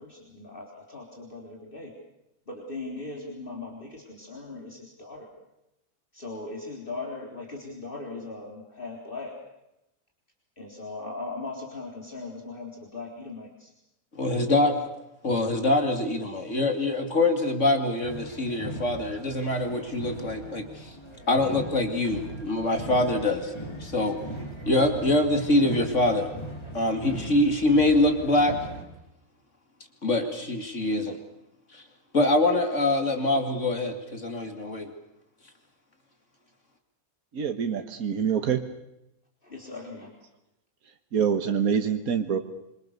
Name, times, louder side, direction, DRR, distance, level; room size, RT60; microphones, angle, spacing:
voice 1, 0.0-1.9 2.5-5.3 6.1-9.4 10.6-13.7 39.4-40.1, left 3 dB, 35° left, -1 dB, 4.2 m, -39 dB
voice 2, 14.2-14.9 15.2-20.9 21.3-23.5 23.8-24.2 24.6-26.3 26.7-28.6 30.0-31.2 31.7-31.8 32.1-34.9, left 2 dB, 55° left, 5 dB, 2.8 m, -24 dB
sound 1, 18.0-28.8, right 1 dB, 20° left, 5.2 m, -39 dB
voice 3, 37.3-38.6 41.1-42.4, right 7 dB, 75° right, 6 dB, 1.9 m, -25 dB
27.0 x 25.0 x 6.8 m, 0.87 s
omnidirectional pair, 1.5 m